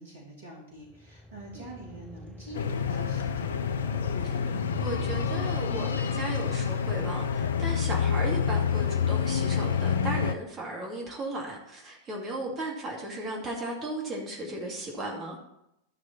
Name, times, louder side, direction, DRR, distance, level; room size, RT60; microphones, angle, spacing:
voice 1, 0.0-3.8, right 1 dB, 65° right, -2 dB, 2.6 m, -45 dB
sound 1, 0.8-8.2, left 1 dB, 5° left, 0.9 m, -43 dB
sound 2, 2.5-10.3, left 7 dB, 65° left, 0.5 m, -28 dB
voice 2, 4.2-15.4, right 1 dB, 30° right, -1 dB, 2.5 m, -36 dB
12.5 x 6.1 x 4.2 m, 0.81 s
figure-of-eight pair, 90°, 0 cm